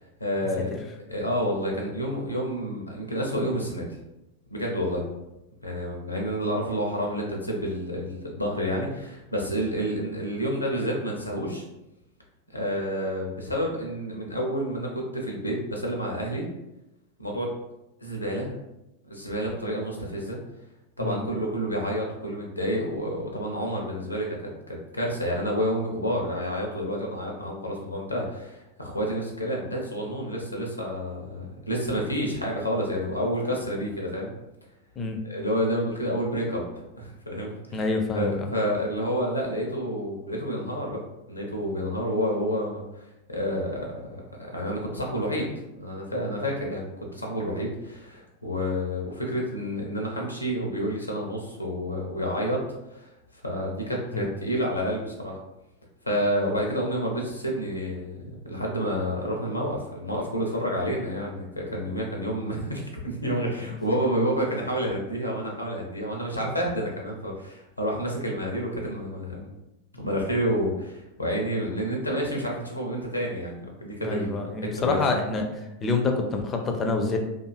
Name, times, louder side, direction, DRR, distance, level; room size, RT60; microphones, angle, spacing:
voice 1, 0.2-0.7 1.1-4.0 4.5-5.1 5.6-11.6 12.5-16.5 17.2-17.5 18.0-18.5 19.0-20.4 21.0-24.4 24.7-34.3 35.2-36.7 37.0-37.8 38.1-45.5 45.8-52.6 52.9-55.4 56.0-69.5 69.9-74.3 74.6-75.0, equal, 85° left, -1 dB, 0.5 m, -29 dB
voice 2, 37.7-38.5 54.1-54.2 74.0-75.4 75.8-77.2, left 3 dB, 25° left, 3 dB, 0.4 m, -26 dB
2.5 x 2.3 x 2.3 m, 0.92 s
figure-of-eight pair, 90°, 0 cm